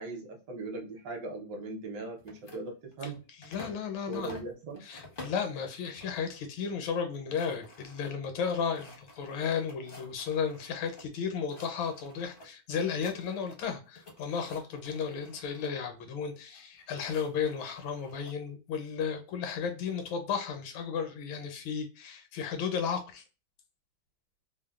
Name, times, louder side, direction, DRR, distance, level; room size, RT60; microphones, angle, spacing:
voice 1, 0.0-3.2 4.1-4.8, right 2 dB, 65° right, 1.2 m, -39 dB
sound 1, 2.2-3.8 4.1-5.5 6.0-6.4 6.7-6.8 7.1-11.1 11.4-12.5 12.8-13.7 13.9-15.7 16.5-18.3, left 2 dB, 55° left, 0.6 m, -51 dB
voice 2, 3.4-4.4 4.8-23.2, left 6 dB, 90° left, 1.5 m, -34 dB
3.3 x 2.0 x 2.2 m
omnidirectional pair, 2.1 m